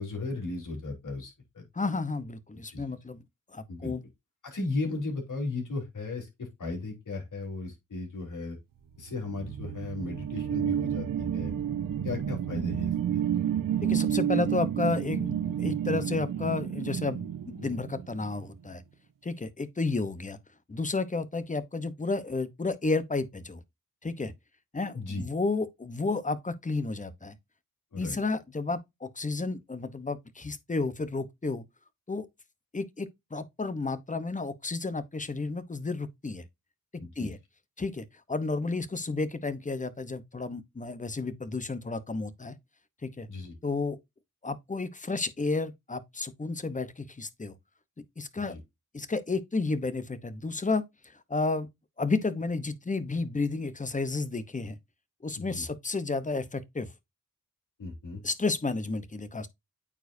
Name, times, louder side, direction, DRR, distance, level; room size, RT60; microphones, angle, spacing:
voice 1, 0.0-1.7 2.7-2.8 3.7-3.9 4.4-8.6 9.0-11.5 12.0-13.2 24.9-25.2 27.9-28.2 37.0-37.3 43.3-43.5 48.4-48.6 55.4-55.7 57.8-58.2, left 3 dB, 65° left, 3.8 m, -36 dB
voice 2, 1.7-3.2 3.5-4.0 13.8-18.8 19.2-20.4 20.7-23.6 24.0-24.3 24.7-27.3 28.0-31.6 32.1-32.3 32.7-36.4 37.2-37.4 37.8-42.5 43.0-43.3 43.6-44.0 44.4-47.5 48.2-48.6 48.9-50.8 51.3-51.7 52.0-54.8 55.2-56.9 58.2-59.5, left 3 dB, 25° left, 0.9 m, -32 dB
sound 1, 9.1-18.3, right 10 dB, 75° right, 1.0 m, -30 dB
8.8 x 4.8 x 2.7 m
wide cardioid pair, 100°, 33 cm